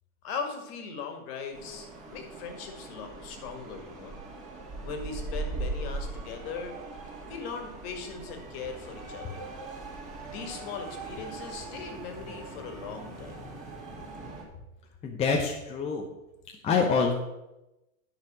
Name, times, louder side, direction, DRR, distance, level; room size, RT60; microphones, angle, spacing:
voice 1, 0.2-4.2 4.8-6.8 7.3-9.5 10.2-13.4, left 5 dB, 45° left, 5 dB, 2.1 m, -39 dB
sound 1, 1.5-14.4, right 2 dB, 15° right, 2.4 m, -40 dB
voice 2, 15.0-16.1 16.6-17.1, left 5 dB, 15° left, 1 dB, 0.8 m, -26 dB
10.5 x 5.8 x 6.2 m, 0.95 s
hypercardioid pair, 145°, 41 cm